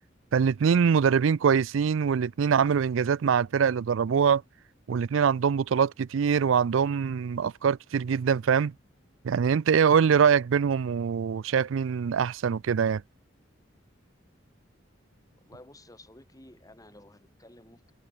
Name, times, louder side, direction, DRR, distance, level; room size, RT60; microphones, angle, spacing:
voice 1, 0.3-4.4 4.9-8.7 9.2-13.0, right 7 dB, 85° right, 0.4 m, -23 dB
voice 2, 15.3-17.9, left 1 dB, 20° left, 7.8 m, -52 dB
head